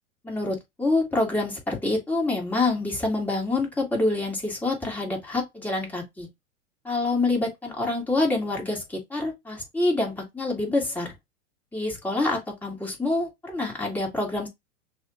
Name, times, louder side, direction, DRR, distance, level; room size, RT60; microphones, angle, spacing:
voice 1, 0.2-6.3 6.8-11.1 11.7-14.5, left 2 dB, 5° left, 2.0 m, -26 dB
6.1 x 2.6 x 2.5 m
hypercardioid pair, 115°, 42 cm